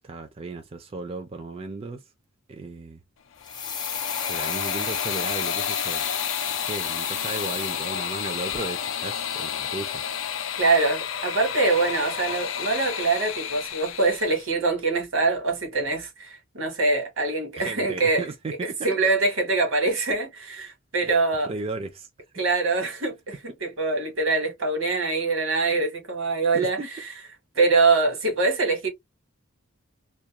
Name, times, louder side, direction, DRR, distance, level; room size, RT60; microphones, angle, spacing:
voice 1, 0.0-2.0 2.5-3.0 4.3-6.0 6.6-10.0 17.5-18.8 21.4-22.1 26.5-26.9, right 3 dB, 30° right, 0.4 m, -35 dB
sound 1, 3.3-14.5, left 8 dB, 75° left, 0.4 m, -31 dB
sound 2, 3.4-8.3 8.5-8.6, left 6 dB, 20° left, 0.5 m, -33 dB
voice 2, 10.6-18.2 18.6-21.5 22.4-27.1 27.5-28.9, right 3 dB, 80° right, 1.1 m, -24 dB
2.3 x 2.2 x 2.8 m
head